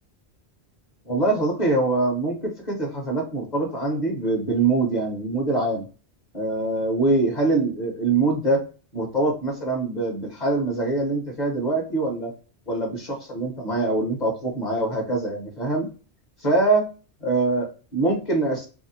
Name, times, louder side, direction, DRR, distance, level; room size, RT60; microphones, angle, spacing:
voice 1, 1.1-5.8 6.3-8.6 8.9-12.3 12.7-15.9 16.4-16.8 17.2-18.7, right 2 dB, 40° left, 0 dB, 1.0 m, -24 dB
2.8 x 2.1 x 4.0 m, 0.35 s
omnidirectional pair, 1.1 m